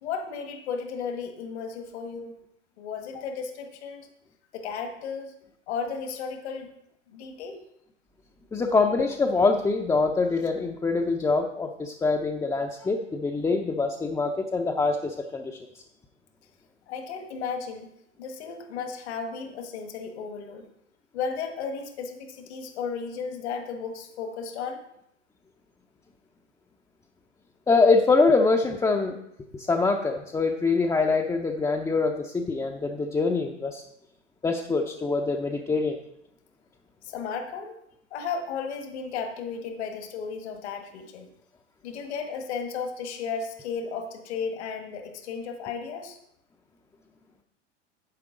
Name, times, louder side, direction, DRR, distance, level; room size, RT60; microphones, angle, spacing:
voice 1, 0.0-2.3 2.8-4.1 4.5-5.3 5.7-6.7 7.1-7.6 16.9-17.9 18.2-20.6 21.1-24.8 37.0-37.8 38.1-41.3 41.8-46.2, left 5 dB, 65° left, 5 dB, 1.6 m, -34 dB
voice 2, 8.5-15.5 27.7-29.2 29.5-33.8 34.4-36.0, left 3 dB, 10° left, 2 dB, 0.6 m, -24 dB
9.9 x 7.6 x 3.7 m, 0.79 s
hypercardioid pair, 100°, 36 cm